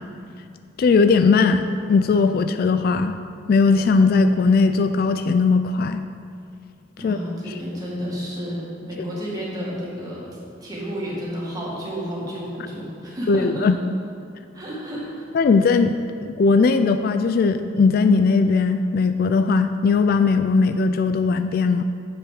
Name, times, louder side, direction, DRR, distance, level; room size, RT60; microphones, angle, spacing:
voice 1, 0.8-1.6 1.9-3.1 3.5-6.0 7.0-7.2 13.3-13.8 15.3-16.0 16.2-21.8, left 4 dB, 55° left, 8 dB, 0.3 m, -18 dB
voice 2, 7.0-10.2 10.6-13.7 14.5-15.3, equal, 20° right, -6 dB, 1.9 m, -31 dB
7.3 x 5.2 x 6.5 m, 2.4 s
head